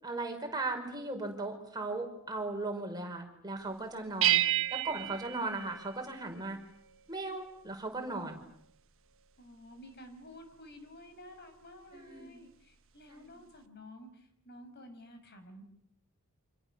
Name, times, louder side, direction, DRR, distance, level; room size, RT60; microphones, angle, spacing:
voice 1, 0.0-4.4 4.7-6.6 7.1-8.4 11.9-12.4 13.1-13.4, right 2 dB, 20° right, 2 dB, 5.3 m, -37 dB
sound 1, 4.2-6.4, right 14 dB, 65° right, 1.3 m, -30 dB
voice 2, 9.4-15.6, equal, 50° left, 7 dB, 5.6 m, -52 dB
29.0 x 27.0 x 7.1 m, 0.72 s
head